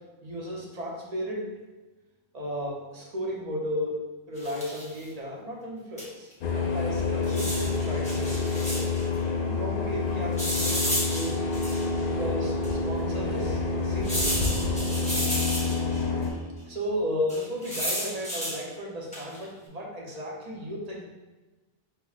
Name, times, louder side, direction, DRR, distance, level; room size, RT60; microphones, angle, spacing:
voice 1, 0.2-1.5 2.3-4.0 4.3-8.4 9.4-11.4 12.0-14.3 15.3-15.5 16.7-21.0, equal, 45° right, -3 dB, 0.7 m, -34 dB
sound 1, 4.4-5.0 6.0-6.1 6.3-6.4 7.2-9.0 10.4-12.0 12.6-12.7 14.0-16.0 17.3-18.6 19.1-19.4, equal, 10° left, 0.8 m, -32 dB
sound 2, 6.4-16.3, left 3 dB, 65° left, 0.7 m, -28 dB
5.5 x 2.0 x 2.3 m, 1.2 s
omnidirectional pair, 1.0 m